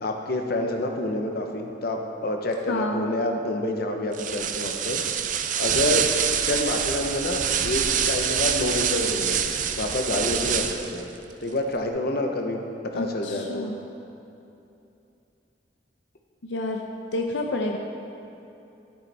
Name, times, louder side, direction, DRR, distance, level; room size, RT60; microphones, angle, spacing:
voice 1, 0.0-5.0 5.6-6.1 6.4-9.4 9.8-11.1 11.4-12.6 12.9-13.7, left 1 dB, 60° left, 3 dB, 0.9 m, -28 dB
voice 2, 2.7-3.1 12.9-13.8 16.4-16.8 17.1-17.8, left 2 dB, 85° left, 2 dB, 0.6 m, -29 dB
sound 1, 4.1-11.0, right 8 dB, 45° right, 0.5 m, -26 dB
13.0 x 8.1 x 3.4 m, 2.8 s
head